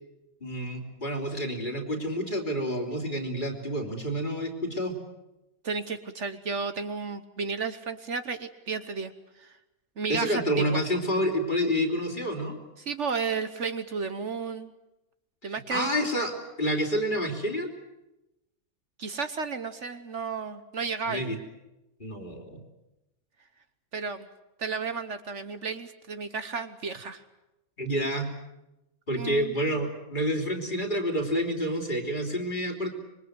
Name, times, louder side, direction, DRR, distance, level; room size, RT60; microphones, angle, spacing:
voice 1, 0.4-5.0 10.1-12.6 15.4-17.7 21.1-21.4 22.0-22.6 27.8-28.3 29.1-32.9, equal, 35° left, 2 dB, 3.4 m, -29 dB
voice 2, 5.6-9.6 10.0-10.8 12.8-14.7 15.4-15.9 19.0-21.2 23.9-24.3 24.6-27.2 29.1-29.6, right 5 dB, 60° right, 10 dB, 1.3 m, -33 dB
25.5 x 22.5 x 8.0 m, 0.96 s
omnidirectional pair, 1.5 m